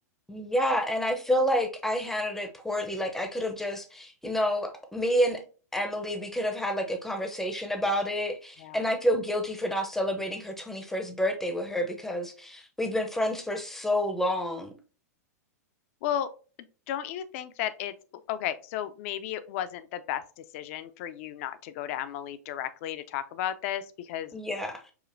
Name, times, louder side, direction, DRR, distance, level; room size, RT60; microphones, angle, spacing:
voice 1, 0.3-5.4 5.7-14.7 24.3-24.8, equal, 5° left, 0.6 m, -29 dB
voice 2, 16.0-16.3 16.9-20.2 20.5-24.3, left 11 dB, 50° left, 0.4 m, -34 dB
4.9 x 2.4 x 2.5 m
hypercardioid pair, 120°, 9 cm